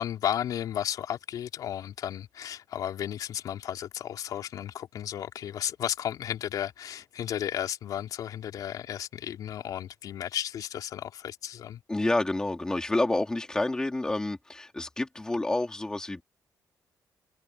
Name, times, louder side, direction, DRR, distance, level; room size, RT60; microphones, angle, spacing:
voice 1, 0.0-11.8, left 10 dB, 65° left, 3.9 m, -33 dB
voice 2, 11.9-16.2, left 2 dB, 10° left, 2.9 m, -28 dB
cardioid pair, 180°, 7 cm